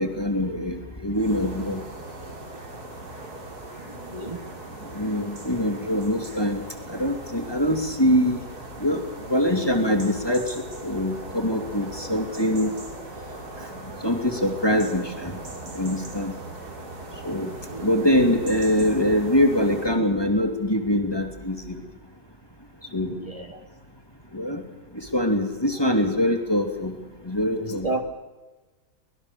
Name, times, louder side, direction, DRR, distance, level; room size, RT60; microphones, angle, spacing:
voice 1, 0.0-1.8 4.9-8.4 8.8-12.7 13.6-13.7 14.0-15.4 15.7-16.3 17.2-17.5 17.8-21.8 22.9-23.2 24.3-24.6 24.9-26.9 27.2-27.9, left 1 dB, 15° left, 4 dB, 2.6 m, -24 dB
sound 1, 1.1-20.0, right 2 dB, 75° right, 3.8 m, -39 dB
voice 2, 3.8-4.4 17.4-17.9 23.1-23.6 27.6-28.0, right 2 dB, 20° right, 2 dB, 1.8 m, -33 dB
24.5 x 19.5 x 6.8 m, 1.2 s
omnidirectional pair, 1.7 m